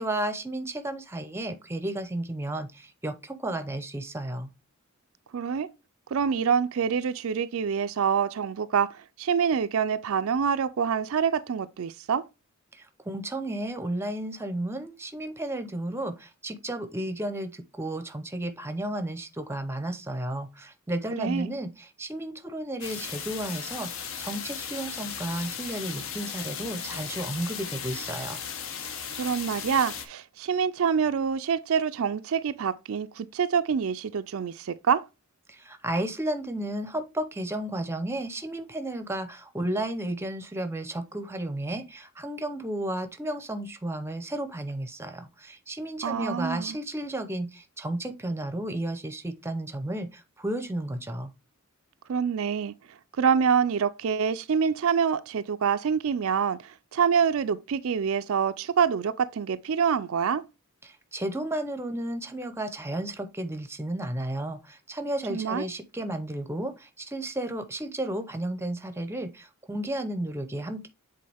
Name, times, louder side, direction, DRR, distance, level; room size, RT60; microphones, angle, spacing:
voice 1, 0.0-4.5 12.7-28.4 35.5-51.3 60.8-70.9, right 1 dB, 10° right, 0.6 m, -33 dB
voice 2, 5.3-5.7 6.1-12.2 21.2-21.5 29.2-35.0 46.0-46.8 52.1-52.7 53.2-60.4 65.3-65.6, right 7 dB, 70° right, 0.4 m, -26 dB
sound 1, 22.8-30.1, left 7 dB, 60° left, 1.0 m, -36 dB
7.7 x 3.7 x 3.4 m
head